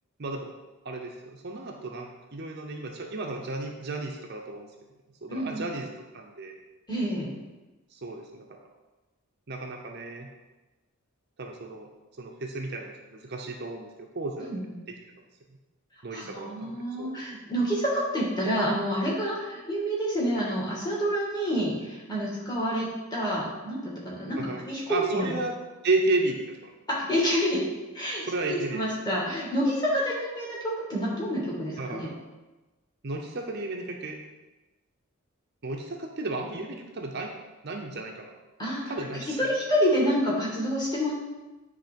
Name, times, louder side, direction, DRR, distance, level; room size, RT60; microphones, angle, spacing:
voice 1, 0.2-0.5 0.8-4.7 5.2-6.5 7.9-8.6 9.5-10.3 11.4-11.9 12.2-14.5 16.0-17.1 24.4-24.6 24.9-25.6 25.8-26.7 28.3-28.8 31.8-32.2 33.0-34.2 35.6-37.3 37.6-38.3 38.9-39.4, right 2 dB, 45° right, 2 dB, 0.6 m, -33 dB
voice 2, 5.3-5.7 6.9-7.3 14.4-14.7 16.1-25.3 26.9-27.6 27.9-32.1 38.6-38.9 39.1-41.1, equal, 20° left, -6 dB, 2.0 m, -28 dB
9.7 x 3.3 x 5.2 m, 1.1 s
head